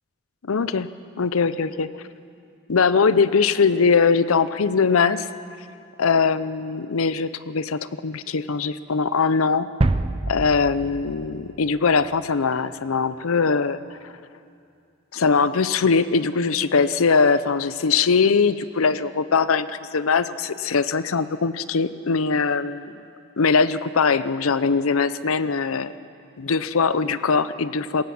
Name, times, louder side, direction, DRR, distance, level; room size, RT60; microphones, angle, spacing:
voice 1, 0.4-0.9 1.2-1.9 2.7-5.3 6.0-9.7 10.3-13.8 14.0-14.1 15.1-22.9 23.4-25.9 26.4-28.0, left 5 dB, 85° left, 14 dB, 0.7 m, -21 dB
sound 1, 9.8-12.3, right 2 dB, 25° right, 0.5 m, -26 dB
20.0 x 18.0 x 7.2 m, 2.5 s
head